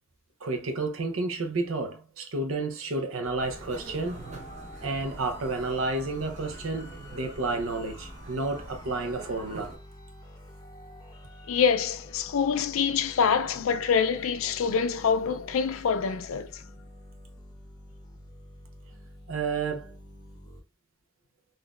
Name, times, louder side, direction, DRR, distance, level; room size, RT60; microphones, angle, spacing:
voice 1, 0.4-4.2 4.8-9.8 19.3-19.9, right 3 dB, 75° right, 0.7 m, -31 dB
sound 1, 3.2-20.6, left 1 dB, 20° left, 0.8 m, -48 dB
sound 2, 3.4-9.8, right 2 dB, 35° right, 0.7 m, -45 dB
voice 2, 11.5-16.6, left 6 dB, 75° left, 0.4 m, -25 dB
3.8 x 2.5 x 2.4 m
head